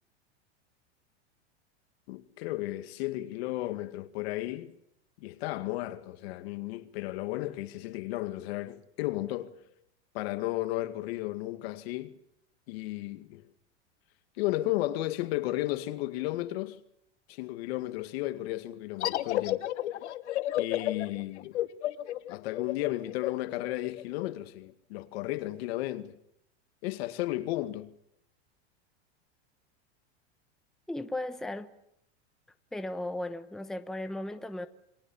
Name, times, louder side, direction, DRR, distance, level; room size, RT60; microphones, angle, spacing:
voice 1, 2.1-4.7 5.2-9.6 10.1-12.1 12.7-13.5 14.4-16.8 17.3-19.7 20.6-21.6 22.3-26.2 26.8-27.9, left 17 dB, 65° left, 2.2 m, -34 dB
sound 1, 19.0-24.3, left 13 dB, 90° left, 1.3 m, -32 dB
voice 2, 30.9-31.7 32.7-34.7, left 1 dB, ahead, 1.0 m, -36 dB
29.0 x 22.5 x 7.2 m
supercardioid pair, 145°, 33 cm